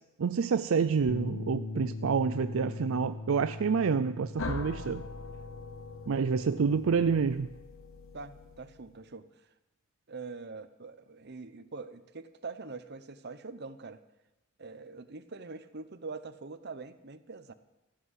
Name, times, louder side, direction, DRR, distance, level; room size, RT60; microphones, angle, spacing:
voice 1, 0.2-5.0 6.1-7.5, right 5 dB, 80° right, 0.4 m, -28 dB
Bass guitar, 1.1-7.3, left 3 dB, 70° left, 0.9 m, -41 dB
sound 1, 4.4-9.1, left 3 dB, 85° left, 1.0 m, -43 dB
voice 2, 8.1-9.3 10.1-14.0 14.6-17.5, right 4 dB, 55° right, 0.9 m, -44 dB
14.5 x 8.2 x 9.5 m
head